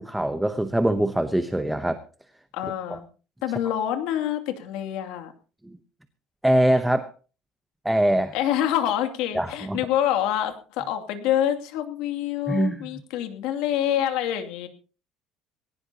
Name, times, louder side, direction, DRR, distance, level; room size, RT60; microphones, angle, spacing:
voice 1, 0.0-2.0 2.9-3.0 5.6-5.8 6.4-7.1 7.8-8.3 9.3-9.8 12.5-12.9, right 1 dB, 5° right, 9 dB, 0.8 m, -23 dB
voice 2, 2.5-3.1 3.4-5.3 8.3-14.7, left 11 dB, 70° left, 7 dB, 2.6 m, -26 dB
20.5 x 18.0 x 2.9 m, 0.36 s
cardioid pair, 165°, 0 cm